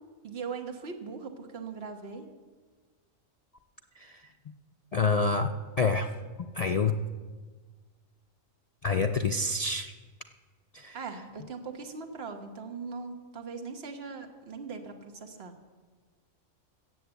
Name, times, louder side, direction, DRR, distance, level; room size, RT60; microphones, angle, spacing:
voice 1, 0.2-2.3 10.9-15.5, right 5 dB, 50° right, 4 dB, 1.5 m, -40 dB
voice 2, 4.9-5.5 5.8-6.1 6.5-6.9 8.8-9.9 10.7-11.0, left 4 dB, 65° left, 5 dB, 0.3 m, -26 dB
14.0 x 7.6 x 8.1 m, 1.4 s
omnidirectional pair, 1.4 m